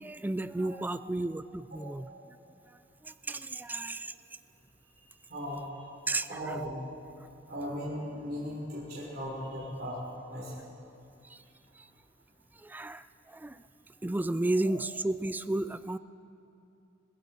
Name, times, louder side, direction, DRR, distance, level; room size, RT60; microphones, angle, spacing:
voice 1, 0.0-2.1 3.0-4.1 6.1-6.6 11.2-11.4 11.8-11.9 12.6-13.6 14.0-16.0, right 2 dB, 10° right, 14 dB, 0.3 m, -33 dB
voice 2, 5.0-5.8 6.3-6.8 7.5-10.0 10.3-10.6, equal, 55° right, -7 dB, 3.6 m, -38 dB
21.0 x 15.0 x 4.3 m, 2.7 s
head